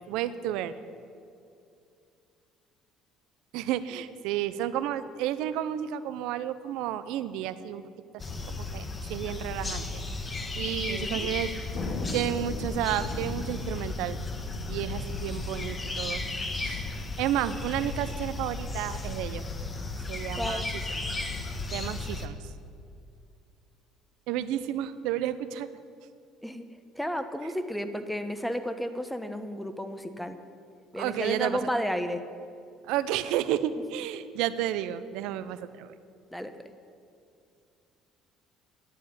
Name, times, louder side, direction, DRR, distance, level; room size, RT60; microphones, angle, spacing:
voice 1, 0.1-0.7 3.5-7.8 8.6-10.0 10.6-11.5 12.1-14.2 14.7-16.2 16.6-16.8 17.2-19.4 20.1-21.0 21.7-22.4 24.3-25.7 31.0-31.6 32.8-35.9, right 11 dB, 80° right, 14 dB, 0.6 m, -31 dB
sound 1, 8.2-22.3, left 3 dB, 25° left, 1.5 m, -35 dB
voice 2, 10.9-11.3 20.3-20.7 26.4-26.7 26.9-30.4 30.9-32.2 33.7-33.8 36.3-36.5, equal, 5° left, 9 dB, 1.1 m, -32 dB
Thunder, 11.7-18.6, left 2 dB, 60° left, 2.0 m, -40 dB
11.0 x 8.5 x 9.9 m, 2.5 s
supercardioid pair, 75°, 0 cm